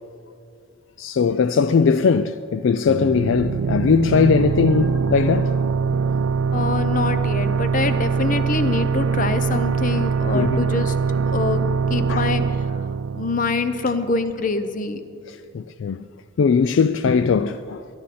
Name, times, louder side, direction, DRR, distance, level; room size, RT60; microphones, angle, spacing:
voice 1, 1.0-5.6 10.3-10.6 12.1-12.3 15.3-16.1 16.4-17.9, left 5 dB, 65° left, 0.3 m, -20 dB
sound 1, 2.9-14.3, right 5 dB, 75° right, 0.4 m, -23 dB
voice 2, 6.5-10.9 11.3-11.6 11.9-12.4 13.1-15.0, left 3 dB, 40° left, 0.7 m, -25 dB
22.0 x 11.0 x 4.3 m
head